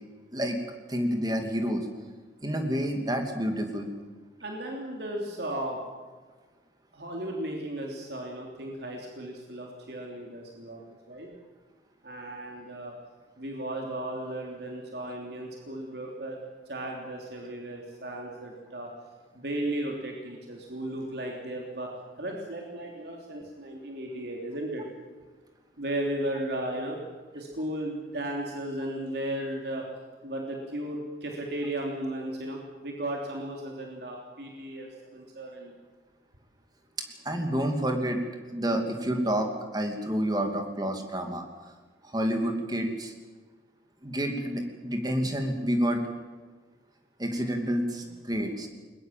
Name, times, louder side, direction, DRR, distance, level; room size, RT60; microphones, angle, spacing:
voice 1, 0.9-1.9 2.4-3.9 37.2-38.2 38.5-41.4 42.1-43.1 44.0-46.0 47.2-48.7, equal, 20° right, 4 dB, 2.7 m, -29 dB
voice 2, 4.4-5.8 6.9-10.8 11.1-11.3 12.0-12.9 13.4-16.4 16.7-18.9 19.3-21.9 22.2-24.8 25.8-27.0 27.3-29.9 30.2-35.8, right 1 dB, 60° right, 0 dB, 3.2 m, -35 dB
21.0 x 21.0 x 7.6 m, 1.4 s
head